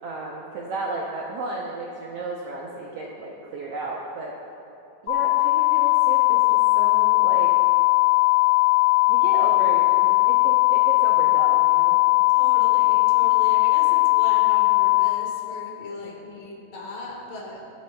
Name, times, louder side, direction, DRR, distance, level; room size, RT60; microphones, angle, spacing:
voice 1, 0.0-4.3 5.0-7.5 9.1-12.0 16.0-16.2, right 3 dB, 75° right, -3 dB, 1.4 m, -34 dB
sound 1, 5.1-15.1, left 25 dB, 40° left, 1.4 m, -19 dB
voice 2, 12.3-17.6, left 2 dB, 85° left, -2 dB, 3.4 m, -38 dB
22.0 x 8.3 x 2.3 m, 2.9 s
omnidirectional pair, 3.7 m